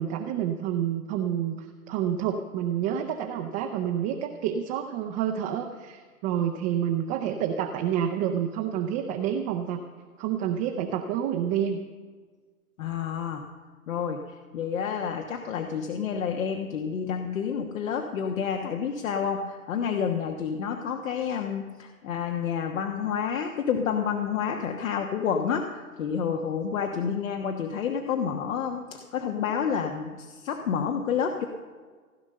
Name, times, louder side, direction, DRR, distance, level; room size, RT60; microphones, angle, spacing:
voice 1, 0.0-1.6 1.9-9.8 10.2-11.8, right 9 dB, 20° right, 3 dB, 0.6 m, -28 dB
voice 2, 12.8-13.4 13.9-14.2 14.5-31.5, left 7 dB, 65° left, 4 dB, 1.4 m, -29 dB
16.5 x 10.0 x 6.6 m, 1.5 s
hypercardioid pair, 135°, 43 cm